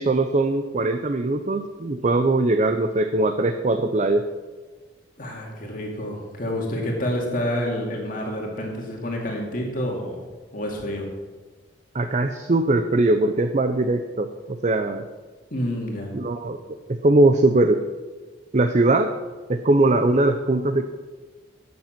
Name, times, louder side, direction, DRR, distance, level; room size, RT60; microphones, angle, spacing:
voice 1, 0.0-4.3 11.9-15.0 16.1-16.6 16.9-17.8 18.5-19.1 19.5-20.8, right 2 dB, 40° right, 8 dB, 0.6 m, -21 dB
voice 2, 5.2-10.2 10.5-11.1 15.5-16.1, left 1 dB, 50° left, -1 dB, 2.4 m, -28 dB
13.0 x 8.5 x 5.9 m, 1.4 s
head